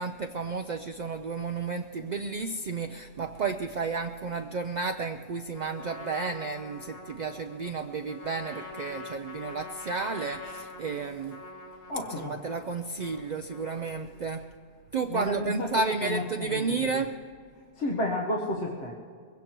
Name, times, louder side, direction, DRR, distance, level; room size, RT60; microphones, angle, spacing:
voice 1, 0.0-11.4 12.2-14.5 14.9-17.2, right 4 dB, 55° right, 6 dB, 0.6 m, -32 dB
Trumpet, 5.5-14.2, left 3 dB, 35° left, 1.5 m, -45 dB
voice 2, 11.9-12.4 15.1-15.7 16.0-17.0 17.8-18.9, left 1 dB, 70° left, -2 dB, 1.5 m, -31 dB
21.5 x 16.0 x 3.0 m, 2.2 s
omnidirectional pair, 1.1 m